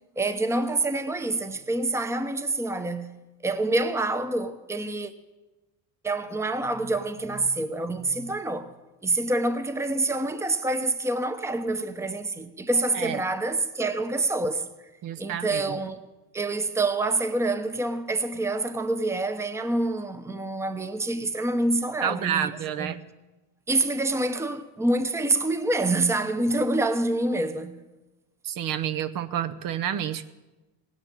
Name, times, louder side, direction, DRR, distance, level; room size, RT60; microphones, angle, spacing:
voice 1, 0.2-3.2 3.4-5.1 6.0-8.7 9.0-14.6 15.2-16.0 16.3-22.5 22.8-23.0 23.7-27.8, right 2 dB, 5° right, 0.8 m, -27 dB
voice 2, 15.0-15.8 22.0-23.0 28.4-30.3, right 10 dB, 55° right, 0.9 m, -29 dB
17.0 x 10.5 x 7.6 m
cardioid pair, 120°, 40 cm